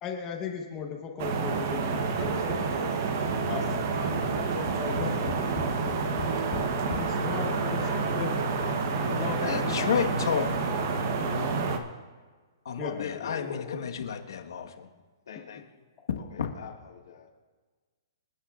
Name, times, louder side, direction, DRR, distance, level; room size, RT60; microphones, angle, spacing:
voice 1, 0.0-2.6 3.5-3.8 4.8-5.3 6.7-7.8 8.1-8.3 9.1-9.8 12.8-13.0, left 6 dB, 15° left, 2 dB, 0.9 m, -36 dB
sound 1, 1.2-11.8, right 4 dB, 35° right, 0.8 m, -29 dB
voice 2, 2.2-5.8, right 2 dB, 85° right, 1 dB, 2.3 m, -42 dB
Tap, 4.1-7.1 7.9-8.0 8.3-8.4, left 7 dB, 35° left, 1.9 m, -38 dB
voice 3, 7.0-8.0 8.6-8.7 9.1-10.0 11.3-11.5 13.1-13.7 15.3-15.7 16.2-17.3, left 7 dB, 85° left, -2 dB, 2.3 m, -43 dB
voice 4, 9.4-10.5 11.5-11.6 12.6-14.9 15.5-15.6 16.4-16.5, left 7 dB, 65° left, 4 dB, 1.3 m, -31 dB
27.5 x 9.9 x 2.4 m, 1.4 s
hypercardioid pair, 180°, 2 cm